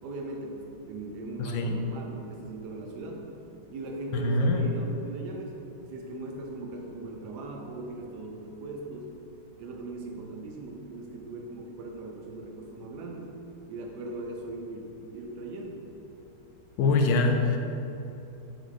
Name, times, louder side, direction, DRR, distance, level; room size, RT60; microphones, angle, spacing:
voice 1, 0.0-3.3 3.7-5.6 5.9-9.2 9.6-13.4 13.7-15.9, right 2 dB, 70° right, 1 dB, 1.2 m, -39 dB
voice 2, 1.4-1.7 4.1-4.7 16.8-17.6, left 3 dB, 85° left, 4 dB, 1.3 m, -24 dB
7.2 x 3.6 x 3.7 m, 2.9 s
omnidirectional pair, 2.0 m